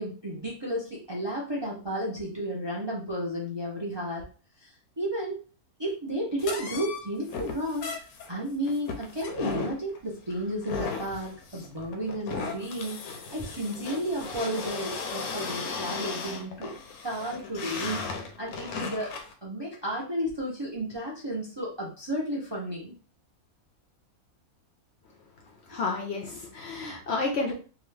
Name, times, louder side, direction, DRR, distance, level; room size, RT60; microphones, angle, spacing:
voice 1, 0.0-4.3 4.6-4.7 5.0-5.4 5.8-7.9 8.3-16.7 17.0-19.1 19.4-23.0, right 1 dB, 40° right, -3 dB, 0.4 m, -32 dB
sound 1, 6.4-19.3, left 5 dB, 80° left, 1.1 m, -36 dB
voice 2, 25.7-27.5, left 3 dB, 60° left, 1 dB, 0.7 m, -30 dB
2.8 x 2.3 x 3.1 m, 0.37 s
omnidirectional pair, 1.5 m